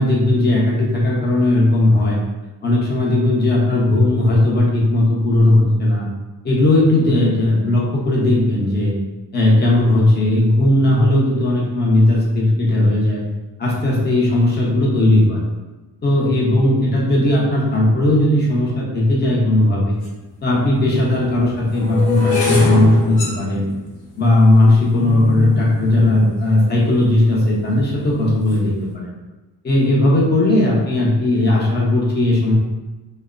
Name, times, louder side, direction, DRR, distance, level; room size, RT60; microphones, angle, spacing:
voice 1, 0.0-2.2 2.6-6.0 6.4-8.9 9.3-13.2 13.6-15.4 16.0-20.0 20.4-23.7 24.2-29.1 29.6-32.5, left 1 dB, 25° left, -4 dB, 0.6 m, -16 dB
sound 1, 20.0-20.1 20.9-27.0 27.7-28.1 28.3-28.7, left 2 dB, 70° left, 0.8 m, -25 dB
2.8 x 2.0 x 2.4 m, 1.1 s
cardioid pair, 140°, 43 cm